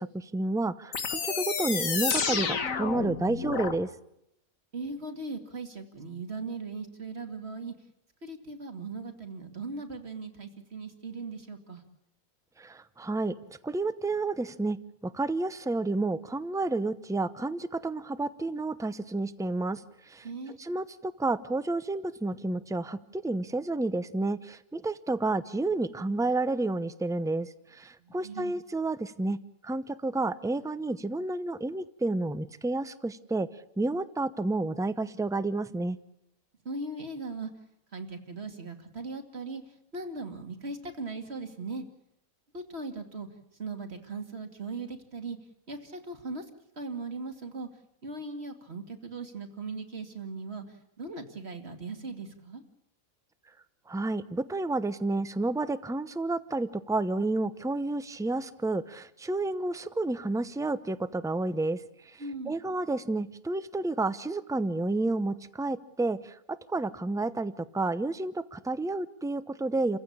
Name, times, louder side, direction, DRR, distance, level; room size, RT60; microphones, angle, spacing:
voice 1, 0.0-3.9 12.6-13.4 13.6-14.8 15.0-20.3 20.6-29.4 29.6-33.5 33.8-36.0 53.9-70.0, right 2 dB, 5° right, 14 dB, 0.6 m, -30 dB
sound 1, 0.9-3.8, left 5 dB, 65° left, 1.8 m, -30 dB
voice 2, 4.7-7.7 8.2-11.8 20.2-20.6 28.0-28.6 36.6-37.5 37.9-41.8 42.5-43.3 43.5-45.4 45.7-46.5 46.8-47.7 48.0-52.6 62.2-62.6, right 3 dB, 45° right, 6 dB, 2.7 m, -39 dB
29.5 x 15.5 x 8.7 m, 0.81 s
omnidirectional pair, 1.5 m